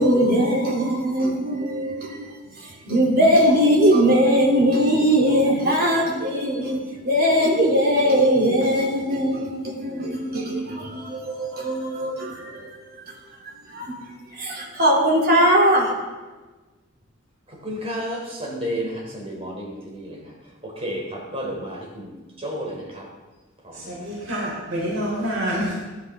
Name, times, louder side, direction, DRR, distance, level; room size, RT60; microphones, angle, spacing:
voice 1, 0.0-2.3 2.6-6.8 7.0-12.7 13.1-13.2 13.7-13.9 14.3-15.9, equal, 45° right, 3.2 m, -20 dB
voice 2, 17.6-20.2 20.6-22.1 22.4-23.1 23.6-23.9, equal, 30° right, 3.5 m, -31 dB
voice 3, 23.7-25.7, equal, 85° right, 3.9 m, -27 dB
19.0 x 13.0 x 3.7 m
head